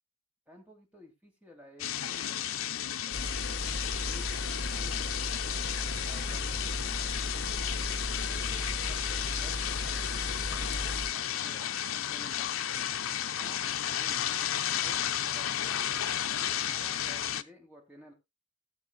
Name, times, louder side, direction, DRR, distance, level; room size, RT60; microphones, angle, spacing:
voice 1, 0.5-2.6 3.0-3.6 4.1-5.8 6.0-6.7 7.3-7.6 8.3-13.1 13.4-14.3 14.8-15.8 16.4-18.1, left 1 dB, 5° right, 1 dB, 2.8 m, -54 dB
sound 1, 1.8-17.4, left 10 dB, 75° left, 0.7 m, -33 dB
sound 2, 3.1-11.1, left 2 dB, 50° left, 1.2 m, -35 dB
19.5 x 7.1 x 2.2 m, 0.22 s
head